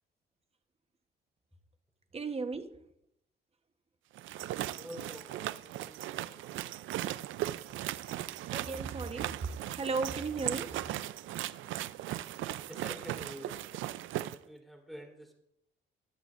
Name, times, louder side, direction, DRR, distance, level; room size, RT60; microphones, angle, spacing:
voice 1, 2.1-2.8 8.5-9.4 9.7-10.8, right 4 dB, 30° right, 1.1 m, -35 dB
sound 1, 4.1-14.4, right 14 dB, 80° right, 0.5 m, -38 dB
voice 2, 4.7-6.5 12.7-13.6 14.2-15.3, equal, ahead, 3.4 m, -48 dB
24.0 x 8.2 x 2.5 m
cardioid pair, 90°, 20 cm